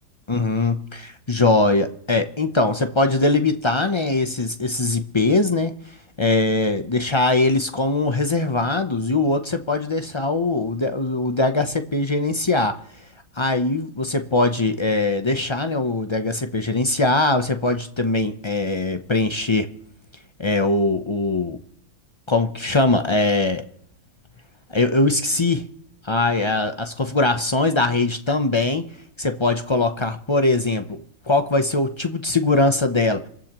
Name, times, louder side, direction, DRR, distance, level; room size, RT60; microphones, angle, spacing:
voice 1, 0.3-5.7 6.2-12.8 13.4-19.7 20.4-21.6 22.3-23.6 24.7-25.6 26.0-28.8 29.2-33.3, left 2 dB, 40° left, 7 dB, 0.4 m, -21 dB
27.0 x 13.5 x 3.0 m, 0.66 s
omnidirectional pair, 1.7 m